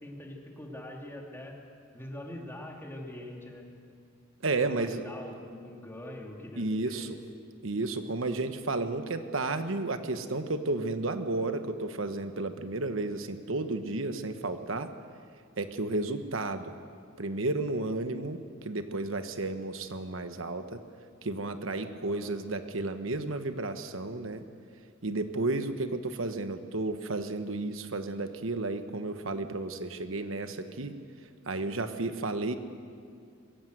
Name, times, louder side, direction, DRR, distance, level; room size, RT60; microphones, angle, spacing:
voice 1, 0.0-1.5 1.9-3.6 4.6-7.1 22.0-22.3, left 1 dB, 10° left, 0 dB, 2.8 m, -43 dB
voice 2, 4.4-5.0 6.5-7.2 7.6-14.9 15.6-16.7 17.2-20.8 21.2-24.4 25.0-31.0 31.5-32.5, right 2 dB, 75° right, 9 dB, 1.2 m, -32 dB
21.5 x 17.0 x 7.9 m, 2.3 s
head